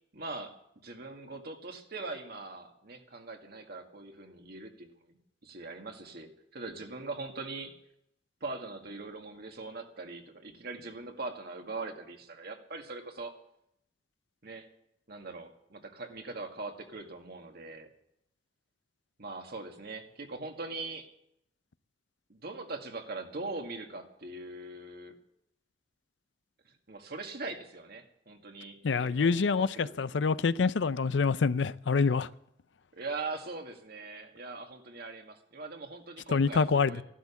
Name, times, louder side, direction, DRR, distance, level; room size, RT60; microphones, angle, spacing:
voice 1, 0.1-0.5 0.8-7.8 8.4-13.3 14.4-14.7 15.1-17.9 19.2-21.1 22.3-25.2 26.7-30.3 32.9-37.0, right 3 dB, 60° right, 2.0 m, -41 dB
voice 2, 28.8-32.3 36.3-37.0, left 5 dB, 80° left, 0.5 m, -26 dB
15.0 x 12.0 x 7.2 m
head